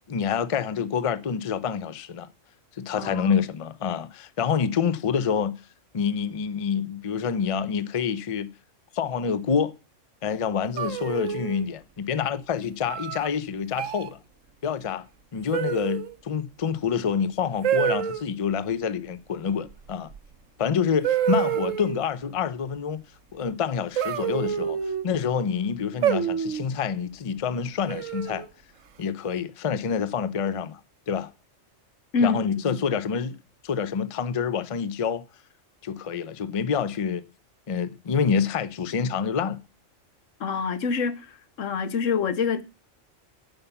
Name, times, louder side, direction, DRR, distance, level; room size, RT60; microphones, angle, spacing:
voice 1, 0.1-2.3 2.8-5.6 5.9-8.5 8.9-9.7 10.2-14.2 14.6-15.1 15.3-20.1 20.6-23.0 23.3-24.8 25.0-28.5 29.0-30.8 31.1-31.3 32.2-33.4 33.6-35.2 35.8-37.2 37.7-39.6, left 6 dB, 35° left, 0.6 m, -27 dB
voice 2, 3.0-3.3 32.1-32.8 40.4-41.2 41.6-42.6, left 5 dB, 85° left, 1.3 m, -26 dB
sound 1, 10.8-11.6 12.9-13.3 13.7-14.1 15.5-16.2 17.6-18.2 20.2-20.3 21.0-22.0 24.0-25.0 26.0-26.7 27.9-28.5, right 9 dB, 90° right, 1.2 m, -27 dB
9.0 x 5.6 x 6.9 m
omnidirectional pair, 1.3 m